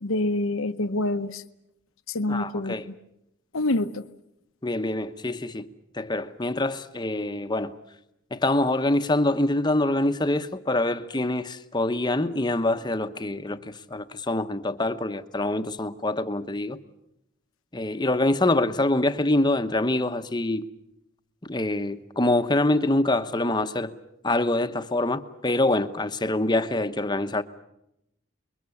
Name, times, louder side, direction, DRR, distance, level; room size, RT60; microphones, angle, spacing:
voice 1, 0.0-1.4 2.1-2.9 3.5-4.1, left 2 dB, 75° left, 0.9 m, -26 dB
voice 2, 2.3-2.9 4.6-5.7 5.9-7.7 8.3-16.8 17.7-20.7 21.5-23.9 24.2-27.4, left 2 dB, 20° left, 0.9 m, -25 dB
28.5 x 22.5 x 7.1 m
head